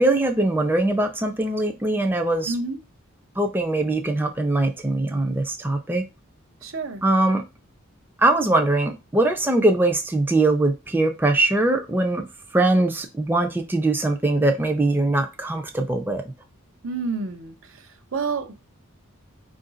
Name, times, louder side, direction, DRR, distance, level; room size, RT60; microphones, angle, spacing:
voice 1, 0.0-2.5 3.4-6.0 7.0-7.4 8.2-12.3 12.5-16.2, right 2 dB, 10° right, 0.5 m, -21 dB
voice 2, 2.5-2.8 6.6-7.0 16.8-18.6, right 4 dB, 70° right, 0.6 m, -29 dB
4.7 x 2.5 x 3.8 m
head